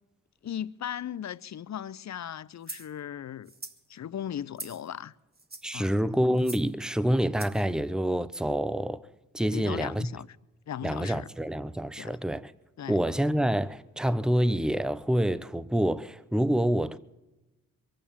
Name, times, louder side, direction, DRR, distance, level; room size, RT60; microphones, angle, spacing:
voice 1, 0.4-3.5 3.9-5.1 5.7-5.9 9.5-10.3 10.7-11.3 12.0-12.2 12.8-13.0, left 9 dB, 50° left, 0.6 m, -37 dB
sound 1, 2.6-2.9 3.5-3.8 4.6-4.9 5.3-5.8 6.4-6.7 7.4-7.6, right 3 dB, 25° right, 1.7 m, -42 dB
voice 2, 5.6-9.0 9.3-10.1 10.8-12.5 12.9-17.0, equal, ahead, 0.8 m, -27 dB
22.5 x 8.8 x 7.2 m
supercardioid pair, 50°, 36 cm